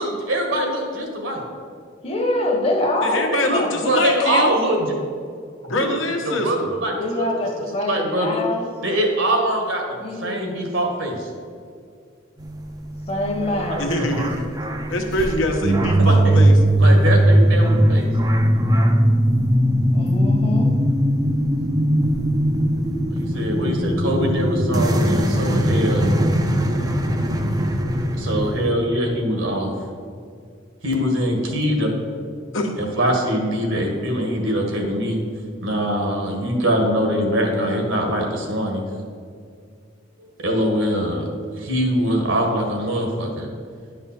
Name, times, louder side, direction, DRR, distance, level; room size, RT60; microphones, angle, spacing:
voice 1, 0.0-1.4 3.3-4.9 6.2-7.2 7.6-8.4 8.8-11.3 13.7-13.9 16.0-16.4 16.8-18.1 23.1-26.1 28.1-29.7 30.8-31.9 32.8-35.2 35.6-38.8 40.2-41.3 41.6-43.5, right 1 dB, 75° right, 1.7 m, -23 dB
voice 2, 2.0-3.9 7.0-8.7 10.0-10.7 13.1-13.9 19.9-20.8, left 1 dB, 30° left, 1.1 m, -25 dB
voice 3, 3.0-4.5 5.7-6.5 13.8-14.5 14.9-16.5 32.5-32.8, left 1 dB, 75° left, 1.1 m, -24 dB
sound 1, 12.4-28.7, right 1 dB, 20° right, 0.5 m, -19 dB
10.5 x 5.4 x 4.3 m
head